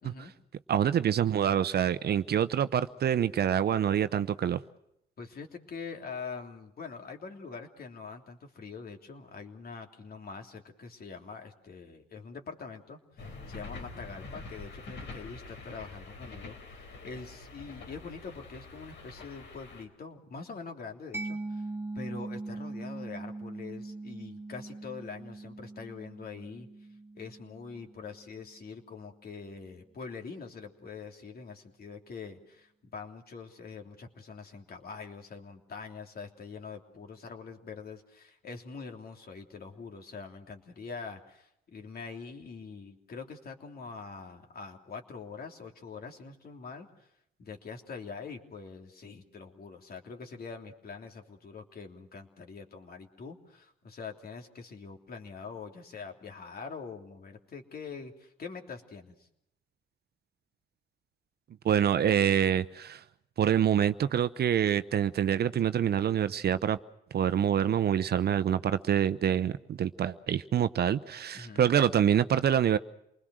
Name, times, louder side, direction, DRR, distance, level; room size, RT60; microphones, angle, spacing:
voice 1, 0.0-0.3 5.2-21.7 21.9-26.7 27.2-47.1 47.4-59.3 71.3-71.7, left 5 dB, 50° left, 3.2 m, -44 dB
voice 2, 0.7-4.6 61.6-63.0 63.4-66.8 67.1-72.8, right 9 dB, 55° right, 0.8 m, -26 dB
sound 1, 13.2-19.8, left 3 dB, 65° left, 4.4 m, -45 dB
Mallet percussion, 21.1-28.5, right 2 dB, 10° right, 2.1 m, -41 dB
28.0 x 20.5 x 6.4 m
cardioid pair, 90°, 20 cm